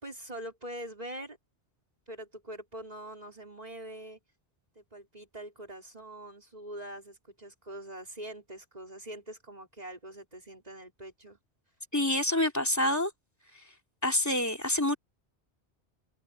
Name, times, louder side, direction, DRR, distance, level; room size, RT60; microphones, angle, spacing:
voice 1, 0.0-1.4 2.1-4.2 4.8-11.4, right 1 dB, 35° right, 5.5 m, -43 dB
voice 2, 11.9-13.1 14.0-15.0, left 1 dB, 15° left, 3.4 m, -27 dB
omnidirectional pair, 1.1 m